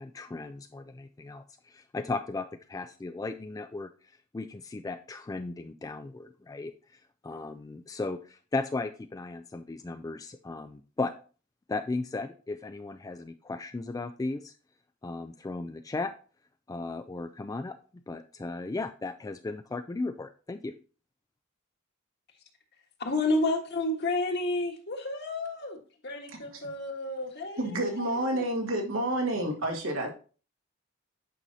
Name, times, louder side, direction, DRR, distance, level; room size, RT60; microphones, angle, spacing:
voice 1, 0.0-3.9 4.3-6.7 7.2-11.1 11.7-14.5 15.0-16.1 16.7-17.8 18.1-20.7, left 3 dB, 15° left, 8 dB, 0.3 m, -36 dB
voice 2, 23.0-25.8 26.0-28.4, left 2 dB, 55° left, 2 dB, 1.5 m, -31 dB
voice 3, 26.3-26.7 27.6-30.1, right 1 dB, 80° right, 0 dB, 1.9 m, -30 dB
9.0 x 5.6 x 2.7 m, 0.37 s
head